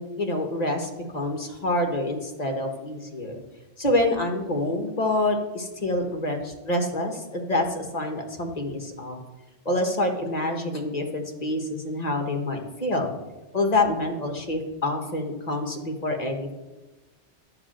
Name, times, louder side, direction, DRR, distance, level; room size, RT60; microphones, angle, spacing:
voice 1, 0.0-3.4 3.8-9.2 9.6-13.1 13.5-16.5, left 1 dB, 35° left, 4 dB, 1.4 m, -27 dB
11.5 x 4.8 x 7.6 m, 1.1 s
omnidirectional pair, 1.2 m